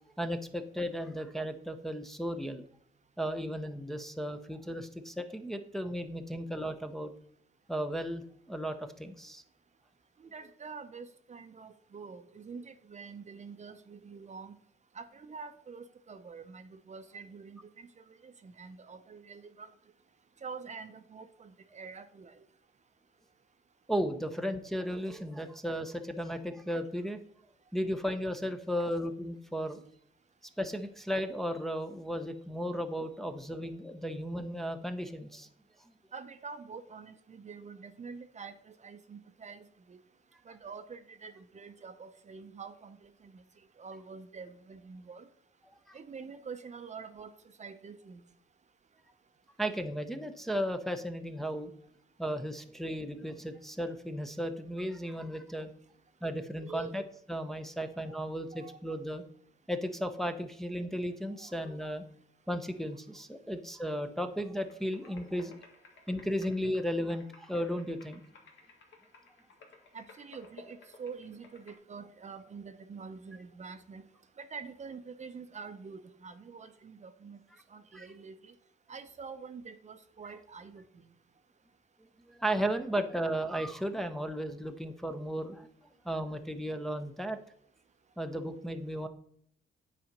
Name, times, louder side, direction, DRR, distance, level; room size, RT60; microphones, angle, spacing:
voice 1, 0.2-2.6 3.2-7.1 7.7-9.4 23.9-27.2 27.7-29.8 30.6-35.5 45.9-46.0 49.6-51.7 52.2-55.7 56.2-57.0 57.3-59.2 59.7-62.0 62.5-65.5 66.1-68.2 77.9-78.1 82.3-85.7 86.0-87.4 88.2-89.1, equal, ahead, 6 dB, 0.7 m, -35 dB
voice 2, 10.2-14.5 14.9-19.7 20.4-22.4 28.8-28.9 36.1-40.0 40.5-43.4 43.8-45.3 45.9-47.3 47.6-48.2 56.3-56.9 58.1-58.2 58.5-58.8 61.3-61.7 69.9-74.0 74.4-77.4 77.7-78.5 78.9-80.9, right 5 dB, 35° right, 9 dB, 0.7 m, -46 dB
sound 1, 64.6-71.7, left 4 dB, 70° left, 1.7 m, -57 dB
8.8 x 4.2 x 5.2 m, 0.67 s
cardioid pair, 90°, 20 cm